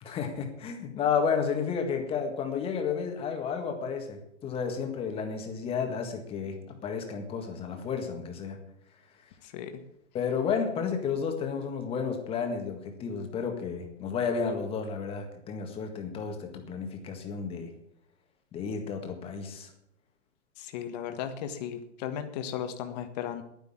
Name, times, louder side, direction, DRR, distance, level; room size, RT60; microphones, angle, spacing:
voice 1, 0.0-8.6 10.1-17.7 18.5-19.7, left 6 dB, 15° left, 4 dB, 1.8 m, -32 dB
voice 2, 9.4-9.8 20.6-23.4, left 9 dB, 35° left, 7 dB, 1.6 m, -36 dB
10.5 x 10.0 x 8.8 m, 0.76 s
hypercardioid pair, 160°, 37 cm